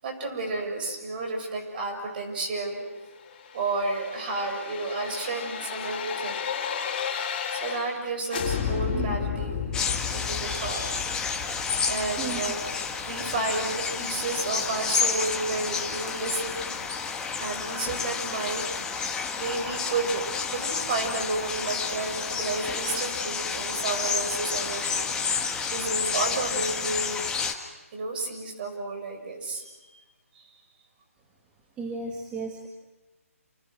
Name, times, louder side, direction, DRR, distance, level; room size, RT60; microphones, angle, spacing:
voice 1, 0.0-2.9 3.5-6.5 7.5-9.6 10.1-11.4 11.9-16.6 17.4-18.7 19.4-27.2 27.9-30.0 30.3-30.5, right 3 dB, 40° right, 3 dB, 7.3 m, -31 dB
sound 1, 3.3-8.0 8.3-13.2 13.5-13.6, left 7 dB, 30° left, 5.2 m, -33 dB
sound 2, 9.7-27.5, left 5 dB, 10° left, 1.7 m, -30 dB
voice 2, 31.8-32.7, right 4 dB, 10° right, 0 dB, 2.0 m, -34 dB
29.0 x 28.5 x 6.4 m, 1.1 s
figure-of-eight pair, 145°, 8 cm